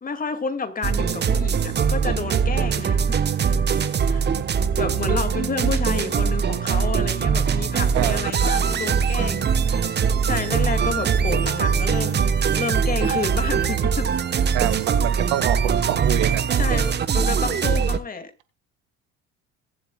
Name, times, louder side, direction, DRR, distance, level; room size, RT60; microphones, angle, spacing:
voice 1, 0.0-4.2 4.8-14.4 16.6-18.3, left 5 dB, 30° left, 2.3 m, -30 dB
sound 1, 0.8-18.0, right 6 dB, 35° right, 1.1 m, -22 dB
voice 2, 14.5-16.5, right 14 dB, 85° right, 1.8 m, -25 dB
21.5 x 8.1 x 2.3 m
cardioid pair, 100°, 29 cm